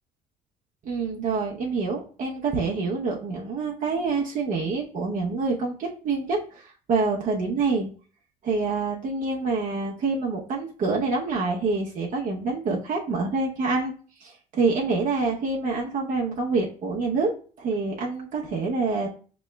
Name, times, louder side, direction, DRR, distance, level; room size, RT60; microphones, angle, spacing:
voice 1, 0.8-7.9 8.4-13.9 14.2-17.3 17.6-19.1, right 4 dB, 50° right, -2 dB, 0.8 m, -26 dB
6.0 x 3.0 x 2.2 m, 0.41 s
cardioid pair, 110°, 17 cm